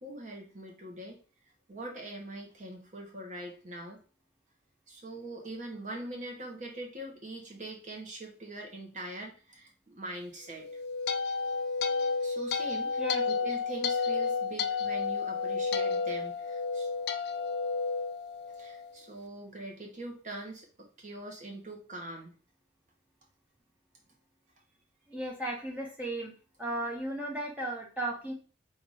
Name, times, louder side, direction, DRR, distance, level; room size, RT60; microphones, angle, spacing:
voice 1, 0.0-1.2 1.7-4.0 4.9-10.7 12.2-16.9 18.5-22.3, right 1 dB, 45° right, 1 dB, 1.0 m, -43 dB
sound 1, 10.5-18.9, left 4 dB, 60° left, 0.4 m, -31 dB
voice 2, 25.1-26.3 26.6-28.3, right 1 dB, 10° right, -2 dB, 1.2 m, -35 dB
4.0 x 2.6 x 4.8 m, 0.38 s
head